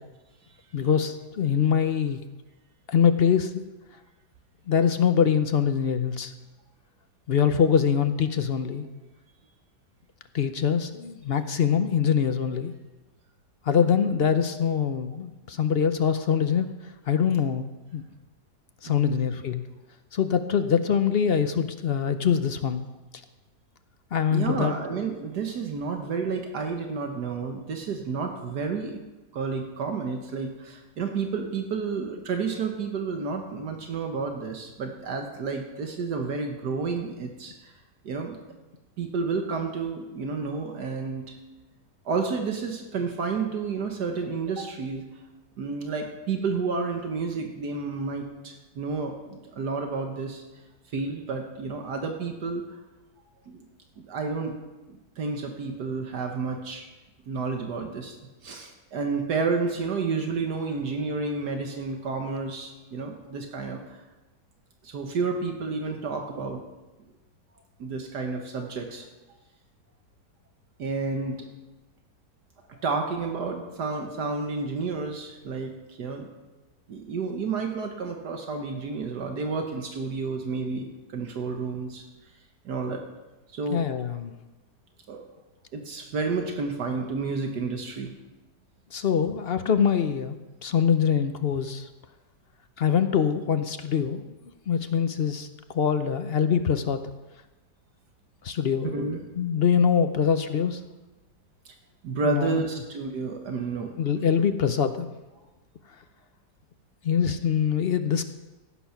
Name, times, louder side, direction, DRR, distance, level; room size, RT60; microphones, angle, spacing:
voice 1, 0.7-2.2 2.9-3.6 4.7-6.3 7.3-8.9 10.3-12.7 13.6-16.7 17.1-18.0 18.8-19.6 20.1-22.8 24.1-24.7 83.7-84.3 88.9-91.9 92.8-94.3 94.7-97.0 98.4-99.1 99.4-100.8 102.2-102.6 104.0-105.1 107.0-108.3, left 7 dB, 55° left, 9 dB, 0.7 m, -24 dB
voice 2, 18.9-19.2 24.3-29.0 29.3-37.7 38.0-38.4 39.0-41.4 42.0-45.0 45.6-50.4 50.9-52.6 53.5-53.6 54.0-54.5 54.9-56.9 57.3-58.1 58.4-64.0 64.8-66.6 67.8-69.1 70.8-71.4 72.7-76.3 76.9-82.0 82.6-83.0 83.5-83.9 85.1-85.2 85.7-88.1 98.9-99.2 102.0-103.9, right 4 dB, 75° right, 4 dB, 1.8 m, -30 dB
15.5 x 9.1 x 5.9 m, 1.1 s
omnidirectional pair, 1.8 m